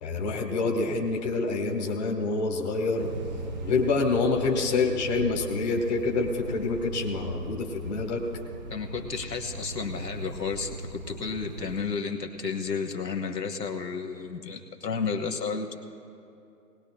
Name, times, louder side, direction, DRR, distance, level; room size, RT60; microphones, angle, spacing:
voice 1, 0.0-3.1 3.6-8.2, left 3 dB, 25° left, 1 dB, 1.3 m, -27 dB
sound 1, 3.0-11.8, right 2 dB, 30° right, 0.7 m, -39 dB
voice 2, 8.7-15.8, left 5 dB, 80° left, 3 dB, 1.2 m, -32 dB
19.5 x 19.0 x 2.3 m, 2.6 s
figure-of-eight pair, 125°, 49 cm